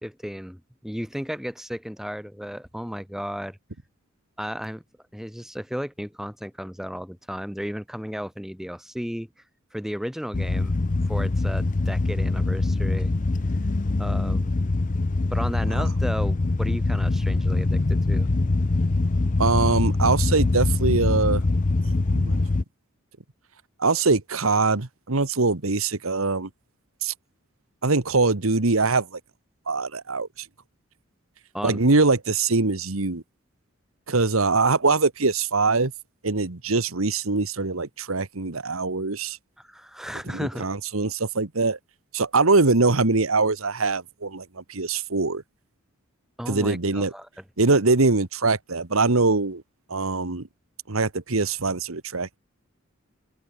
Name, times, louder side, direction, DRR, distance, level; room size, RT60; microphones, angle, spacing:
voice 1, 0.0-3.6 4.4-4.8 5.1-9.3 9.7-10.8 11.1-13.1 14.0-14.5 15.3-18.3 31.5-31.8 39.6-40.7 46.4-47.3, equal, ahead, 2.6 m, -34 dB
sound 1, 10.3-22.6, left 2 dB, 40° left, 0.6 m, -23 dB
voice 2, 19.4-21.4 21.8-22.4 23.8-26.5 27.0-27.1 27.8-29.2 29.7-30.3 31.6-33.2 34.1-35.9 36.2-39.4 40.3-41.8 42.1-45.4 46.5-47.1 47.6-49.6 49.9-50.5 50.9-52.4, right 3 dB, 85° right, 1.5 m, -23 dB
open air
head